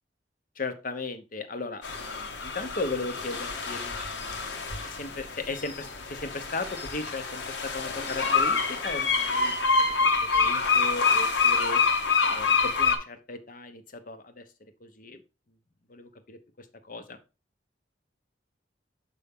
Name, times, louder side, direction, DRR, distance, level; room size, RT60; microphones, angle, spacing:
voice 1, 0.6-9.7 10.0-11.8 12.3-15.2 15.9-17.2, left 3 dB, 45° left, 9 dB, 0.8 m, -37 dB
sound 1, 1.8-13.0, left 4 dB, 70° left, 1.1 m, -26 dB
6.9 x 5.3 x 3.6 m, 0.30 s
head